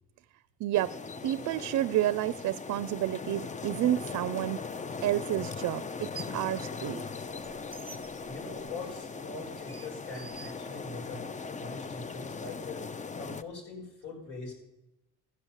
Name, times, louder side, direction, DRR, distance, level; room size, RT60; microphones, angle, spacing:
voice 1, 0.6-0.9 1.2-4.6 5.0-7.0, right 13 dB, 65° right, 14 dB, 0.5 m, -30 dB
sound 1, 0.7-13.4, left 4 dB, 25° left, 0.6 m, -39 dB
sound 2, 4.7-4.8 5.8-6.5 6.9-11.2, right 4 dB, 20° right, 0.6 m, -50 dB
voice 2, 8.2-11.3 11.6-14.6, left 3 dB, 85° left, 0 dB, 5.6 m, -42 dB
14.0 x 7.9 x 7.3 m, 0.93 s
cardioid pair, 90°, 30 cm